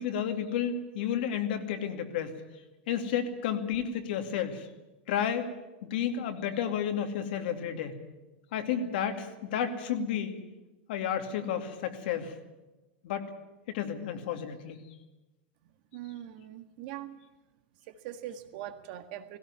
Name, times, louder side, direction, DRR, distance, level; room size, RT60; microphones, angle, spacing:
voice 1, 0.0-2.4 2.9-4.7 5.1-5.5 5.9-8.0 8.5-10.3 10.9-12.3 13.0-13.3 13.7-14.8, left 8 dB, 65° left, 6 dB, 2.5 m, -31 dB
voice 2, 15.9-17.2 17.9-19.4, right 12 dB, 50° right, 9 dB, 1.8 m, -42 dB
18.0 x 17.0 x 9.8 m, 1.1 s
supercardioid pair, 165°, 6 cm